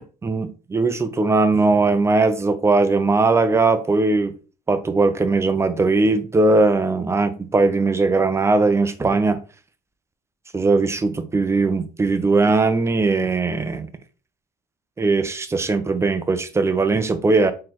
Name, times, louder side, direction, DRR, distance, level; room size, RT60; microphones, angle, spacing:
voice 1, 0.2-4.3 4.7-9.4 10.5-13.9 15.0-17.5, right 3 dB, 15° right, 0.5 m, -19 dB
4.0 x 3.2 x 2.9 m
cardioid pair, 110°, 17 cm